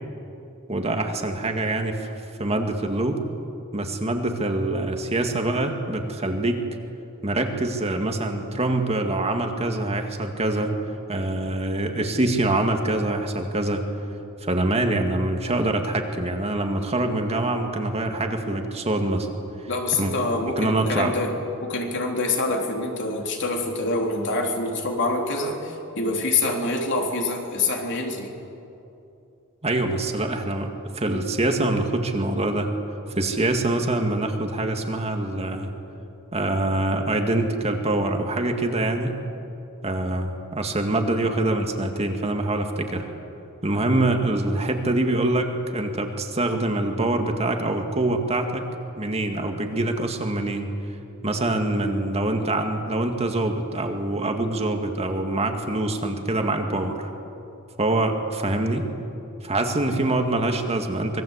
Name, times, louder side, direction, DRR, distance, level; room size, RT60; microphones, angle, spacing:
voice 1, 0.7-2.1 2.4-3.2 3.7-6.6 7.2-10.7 11.1-13.8 14.4-19.3 19.9-20.1 20.6-21.1 29.6-30.7 31.0-32.7 33.2-35.7 36.3-39.1 39.8-43.1 43.6-48.7 49.0-50.7 51.2-57.1 57.8-58.8 59.4-61.2, right 2 dB, 30° right, 4 dB, 2.1 m, -25 dB
voice 2, 19.7-21.3 21.6-28.3, left 2 dB, 55° left, 1 dB, 3.6 m, -26 dB
26.0 x 21.5 x 8.2 m, 2.8 s
head